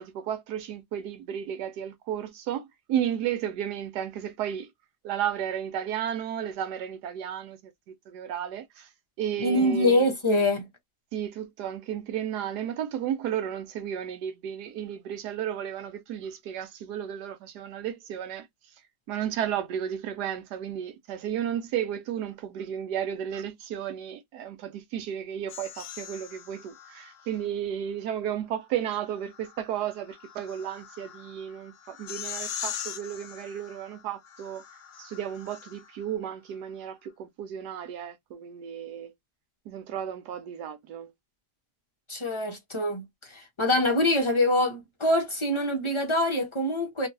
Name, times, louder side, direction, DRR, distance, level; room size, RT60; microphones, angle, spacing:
voice 1, 0.0-4.7 5.0-8.9 9.2-10.1 11.1-18.5 19.1-34.6 35.0-39.1 39.7-41.1, right 9 dB, 80° right, 1.2 m, -33 dB
voice 2, 9.4-10.7 42.1-47.1, left 1 dB, 35° left, 0.5 m, -25 dB
sound 1, 25.5-27.5 28.9-36.1, left 9 dB, 60° left, 0.9 m, -42 dB
3.0 x 2.5 x 2.6 m
omnidirectional pair, 1.8 m